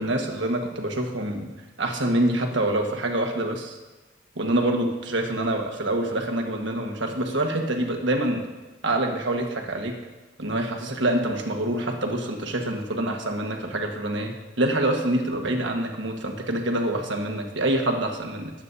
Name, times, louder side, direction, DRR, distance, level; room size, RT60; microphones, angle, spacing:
voice 1, 0.0-1.5 1.8-3.8 4.3-8.4 8.8-10.0 10.4-14.3 14.6-18.5, right 1 dB, 65° right, 2 dB, 1.5 m, -26 dB
20.0 x 8.7 x 2.7 m, 1.2 s
head